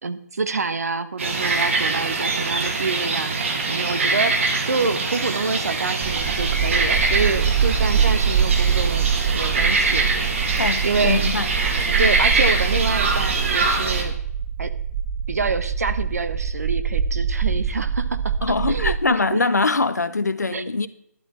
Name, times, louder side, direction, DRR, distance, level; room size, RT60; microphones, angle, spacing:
voice 1, 0.0-3.3 3.7-4.3 4.6-10.1 10.8-11.2 11.7-14.2 14.6-14.7 15.3-18.3 18.7-19.4 20.5-20.9, right 4 dB, 65° right, 1.0 m, -27 dB
sound 1, 1.2-14.0, right 3 dB, 50° right, 2.4 m, -23 dB
sound 2, 6.0-19.0, right 7 dB, 15° right, 0.5 m, -24 dB
voice 2, 10.6-11.5 18.4-20.9, left 3 dB, 80° left, 0.8 m, -22 dB
11.5 x 11.0 x 4.3 m
figure-of-eight pair, 145°, 9 cm